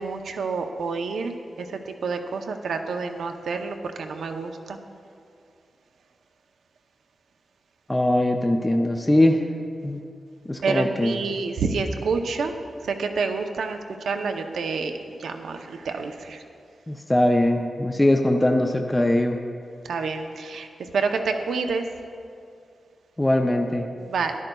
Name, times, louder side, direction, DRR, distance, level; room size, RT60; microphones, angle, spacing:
voice 1, 0.0-4.8 10.6-12.5 12.8-13.8 14.0-14.9 15.2-16.4 19.8-21.9 24.0-24.3, right 4 dB, 90° right, 5 dB, 0.6 m, -28 dB
voice 2, 7.9-9.4 9.8-10.0 10.5-11.1 16.9-19.4 23.2-23.9, left 1 dB, 10° left, 4 dB, 0.4 m, -21 dB
13.0 x 11.0 x 2.3 m, 2.4 s
wide cardioid pair, 170°, 0 cm